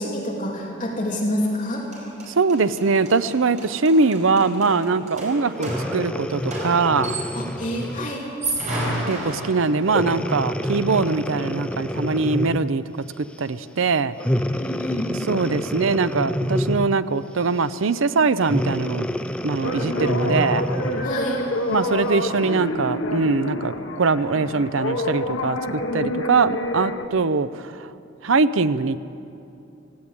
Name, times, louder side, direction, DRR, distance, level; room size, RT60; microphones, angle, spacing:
voice 1, 0.0-1.9 7.3-8.2 14.5-15.1 21.0-21.4, left 1 dB, 40° left, -2 dB, 2.7 m, -27 dB
sound 1, 1.6-1.7 1.9-7.6 8.2-10.0, right 1 dB, 35° right, 5.2 m, -32 dB
voice 2, 2.3-7.2 8.8-12.8 13.2-14.2 15.3-19.1 19.4-20.7 21.7-27.9 28.2-29.0, right 4 dB, 80° right, 14 dB, 0.6 m, -22 dB
Breathing, 5.6-8.2 8.8-9.0 9.9-12.8 14.2-17.0 18.4-21.2 21.8-21.9, equal, 5° left, 0.5 m, -27 dB
sound 2, 19.6-27.1, left 1 dB, 80° left, 1.4 m, -27 dB
18.0 x 16.5 x 8.9 m, 2.7 s
head